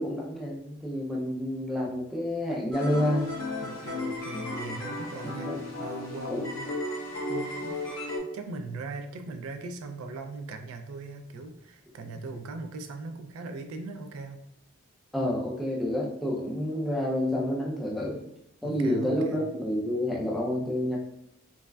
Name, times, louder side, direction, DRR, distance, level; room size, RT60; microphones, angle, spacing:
voice 1, 0.0-3.3 5.1-5.6 6.3-6.4 15.1-18.2 18.6-21.0, left 1 dB, ahead, -4 dB, 0.4 m, -29 dB
sound 1, 2.7-8.2, left 2 dB, 70° left, 1.2 m, -34 dB
voice 2, 3.6-5.5 5.8-6.7 7.3-7.8 8.3-14.4 18.6-19.4, right 3 dB, 85° right, 7 dB, 0.3 m, -39 dB
3.3 x 2.1 x 2.2 m, 0.75 s
head